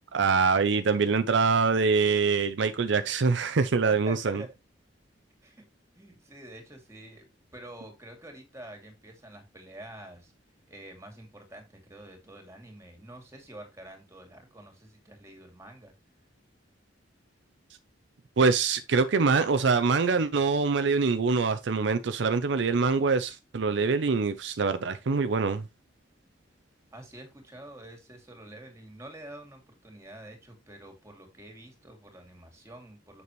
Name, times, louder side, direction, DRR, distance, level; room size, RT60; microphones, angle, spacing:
voice 1, 0.1-4.4 18.4-25.6, right 4 dB, 70° right, 0.5 m, -24 dB
voice 2, 3.8-4.5 5.4-5.6 5.9-10.3 10.7-15.9 26.9-33.2, right 1 dB, 15° right, 2.5 m, -47 dB
6.9 x 6.8 x 3.1 m
head